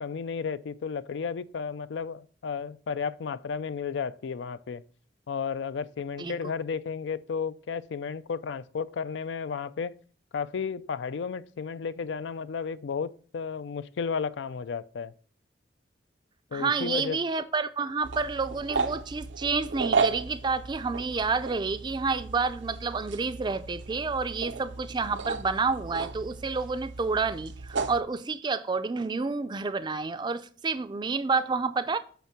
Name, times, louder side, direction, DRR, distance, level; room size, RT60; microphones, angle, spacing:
voice 1, 0.0-4.8 5.3-10.0 10.3-15.1 16.5-17.2, left 6 dB, 85° left, 0.4 m, -33 dB
voice 2, 16.5-32.0, right 4 dB, 25° right, 0.4 m, -29 dB
sound 1, 18.0-28.0, right 4 dB, 85° right, 0.5 m, -34 dB
8.3 x 3.4 x 5.8 m
head